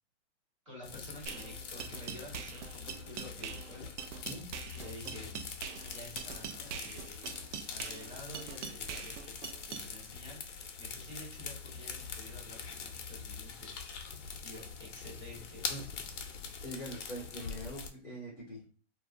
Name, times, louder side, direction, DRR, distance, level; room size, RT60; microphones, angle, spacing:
voice 1, 0.6-3.9 4.7-5.4 5.9-7.3 7.7-9.2 9.7-10.4 10.8-13.8 14.4-15.7, left 1 dB, 25° right, -4 dB, 0.9 m, -49 dB
sound 1, 0.8-17.9, left 5 dB, 80° left, 0.6 m, -44 dB
sound 2, 1.3-9.9, right 8 dB, 80° right, 0.5 m, -43 dB
voice 2, 16.6-18.6, equal, 5° right, -20 dB, 0.5 m, -43 dB
2.8 x 2.3 x 2.4 m, 0.39 s
hypercardioid pair, 175°, 35 cm